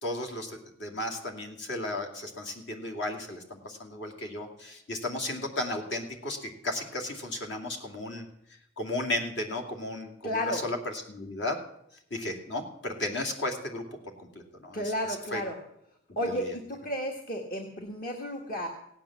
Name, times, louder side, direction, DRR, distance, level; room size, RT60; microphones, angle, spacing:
voice 1, 0.0-8.2 8.5-11.6 12.1-13.8 14.2-14.9 15.3-15.4 16.2-16.5, left 1 dB, 70° left, 2 dB, 2.6 m, -34 dB
voice 2, 10.2-10.6 14.7-15.5 16.1-18.7, equal, 50° left, 2 dB, 1.6 m, -32 dB
17.0 x 9.1 x 7.3 m, 0.74 s
head